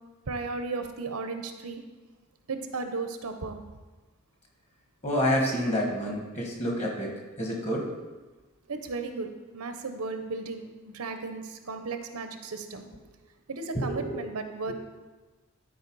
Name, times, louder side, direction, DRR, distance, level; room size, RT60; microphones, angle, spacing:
voice 1, 0.3-1.8 2.5-3.6 8.7-12.9 13.5-14.7, right 3 dB, 85° right, 7 dB, 0.8 m, -35 dB
voice 2, 5.0-7.9 13.7-14.2 14.7-14.8, equal, 30° left, 0 dB, 1.6 m, -28 dB
11.0 x 4.6 x 4.7 m, 1.2 s
head